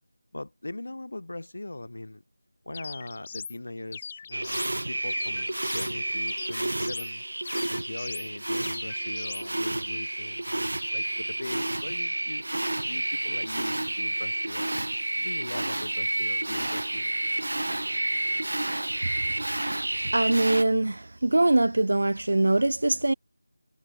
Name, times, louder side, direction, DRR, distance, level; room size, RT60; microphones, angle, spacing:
voice 1, 0.3-2.2 2.6-5.5 5.7-7.2 7.7-12.5 12.8-14.7 15.1-17.2, left 2 dB, 60° left, 6.8 m, -40 dB
sound 1, 2.7-3.6 3.9-4.8 5.1-5.9 6.3-7.1 7.5-8.3 8.6-9.5, left 6 dB, 15° left, 1.2 m, -40 dB
sound 2, 4.3-20.6, right 1 dB, 85° right, 1.2 m, -30 dB
voice 2, 20.1-23.1, right 2 dB, 55° right, 0.5 m, -23 dB
figure-of-eight pair, 180°, 0 cm